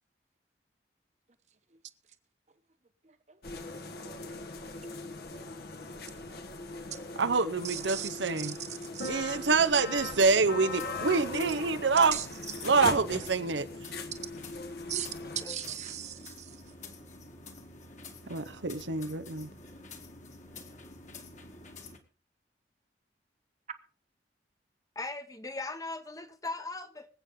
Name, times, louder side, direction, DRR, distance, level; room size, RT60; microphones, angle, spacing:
voice 1, 3.0-3.4 7.6-8.1 8.4-9.1 12.1-12.7 14.9-15.1 15.4-16.6, right 10 dB, 40° right, 1.2 m, -39 dB
sound 1, 3.4-15.4, left 3 dB, 55° left, 1.4 m, -40 dB
voice 2, 7.2-8.6 9.1-12.2 12.6-13.7 18.3-19.5, right 4 dB, 85° right, 0.9 m, -26 dB
sound 2, 9.9-22.0, left 3 dB, 40° left, 1.9 m, -49 dB
voice 3, 24.9-27.1, left 3 dB, 20° left, 1.1 m, -39 dB
25.0 x 8.4 x 3.7 m
head